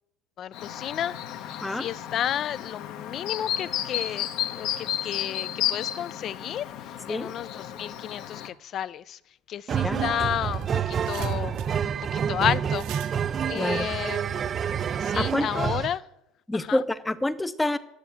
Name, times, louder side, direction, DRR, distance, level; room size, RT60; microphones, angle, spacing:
voice 1, 0.4-9.2 9.5-14.4 15.0-16.0 16.5-16.8, left 10 dB, 40° left, 18 dB, 0.5 m, -32 dB
Chirp tweet, 0.5-8.5, left 11 dB, 60° left, 1.1 m, -33 dB
sound 1, 9.7-16.0, right 8 dB, 30° right, 0.4 m, -28 dB
sound 2, 10.3-14.6, right 12 dB, 60° right, 1.0 m, -45 dB
voice 2, 13.5-13.9 15.1-15.8 16.5-17.8, left 1 dB, 10° left, 13 dB, 0.7 m, -27 dB
11.0 x 7.1 x 8.4 m, 0.87 s
supercardioid pair, 120°, 0 cm